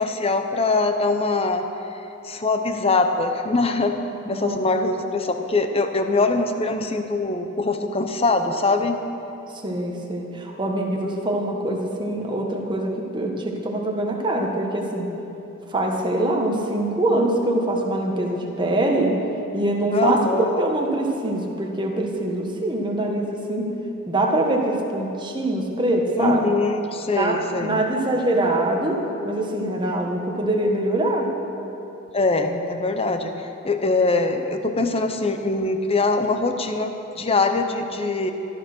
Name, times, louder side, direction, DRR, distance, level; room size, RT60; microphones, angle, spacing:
voice 1, 0.0-1.7 2.2-3.9 4.3-9.0 19.9-20.6 26.2-27.8 32.1-38.3, left 3 dB, 25° left, 6 dB, 0.8 m, -23 dB
voice 2, 4.2-4.6 9.6-15.1 15.7-19.2 19.5-20.3 20.6-23.7 24.0-26.5 27.1-31.3, right 1 dB, 20° right, 0 dB, 1.6 m, -24 dB
13.5 x 13.0 x 6.3 m, 2.9 s
head